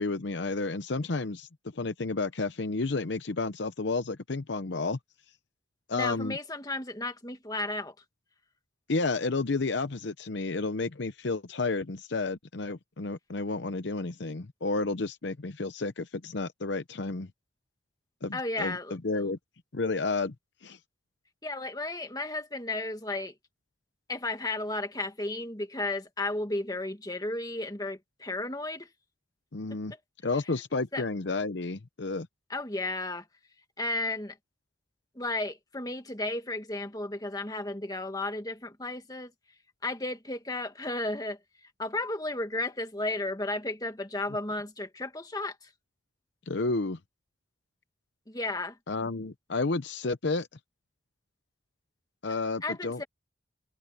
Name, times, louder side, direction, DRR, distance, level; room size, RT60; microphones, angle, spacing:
voice 1, 0.0-5.0 5.9-6.4 8.9-17.3 18.2-19.4 19.7-20.3 20.6-20.8 29.5-29.9 30.2-32.3 46.5-47.0 48.9-50.5 52.2-53.0, left 3 dB, 60° left, 0.8 m, -31 dB
voice 2, 5.9-7.9 18.3-19.3 21.4-23.3 24.1-28.9 30.9-31.0 32.5-33.2 33.8-34.4 35.2-39.3 39.8-41.4 41.8-45.7 48.3-48.8 52.6-53.1, left 2 dB, 20° left, 1.8 m, -33 dB
head